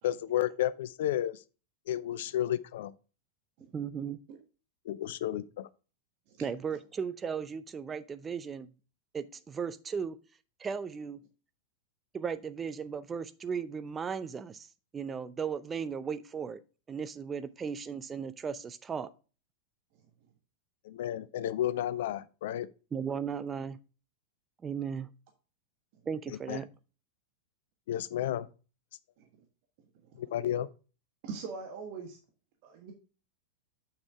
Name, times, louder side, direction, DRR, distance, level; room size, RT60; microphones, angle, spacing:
voice 1, 0.0-1.4 1.9-2.9 4.9-5.7 20.8-22.7 26.3-26.6 27.9-28.5 30.2-30.7, left 12 dB, 55° left, 0.5 m, -32 dB
voice 2, 3.7-4.2 6.4-8.7 9.1-10.2 10.6-11.2 12.1-14.7 14.9-16.6 16.9-19.1 22.9-23.8 24.6-25.1 26.1-26.7, right 6 dB, 20° right, 0.6 m, -36 dB
voice 3, 31.2-32.2 32.6-32.9, right 5 dB, 45° right, 1.3 m, -42 dB
7.3 x 6.2 x 3.4 m
figure-of-eight pair, 90°, 0 cm